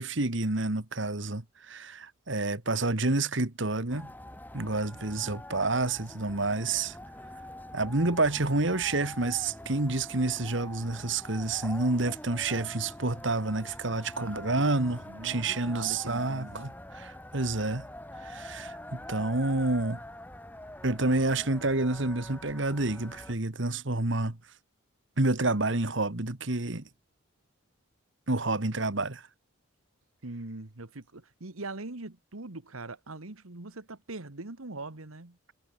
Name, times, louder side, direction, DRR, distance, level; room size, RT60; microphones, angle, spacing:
voice 1, 0.0-4.1 4.5-7.0 7.7-17.9 18.2-20.0 20.8-24.4 25.2-26.8 28.3-29.2, right 2 dB, 60° right, 1.8 m, -29 dB
sound 1, 3.9-23.3, left 1 dB, 10° left, 2.8 m, -45 dB
voice 2, 14.2-16.7 30.2-35.4, right 2 dB, 90° right, 1.8 m, -42 dB
head